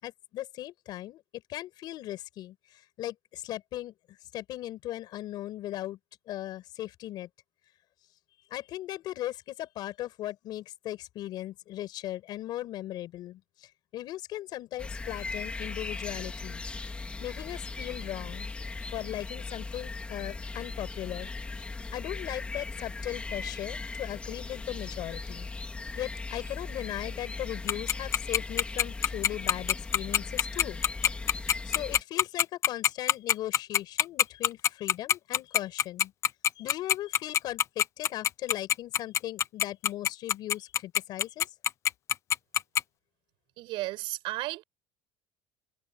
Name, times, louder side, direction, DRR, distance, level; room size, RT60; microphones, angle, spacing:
voice 1, 0.0-3.9 4.3-6.0 6.3-7.3 8.5-16.6 17.2-18.5 18.9-21.3 21.9-25.5 26.0-31.1 31.6-36.1 36.6-41.5, left 14 dB, 45° left, 5.5 m, -38 dB
sound 1, 14.8-32.0, left 3 dB, 10° left, 2.9 m, -38 dB
Tick-tock, 27.7-42.8, left 10 dB, 30° left, 0.6 m, -23 dB
voice 2, 43.6-44.6, right 19 dB, 55° right, 6.7 m, -34 dB
cardioid pair, 180°, 10 cm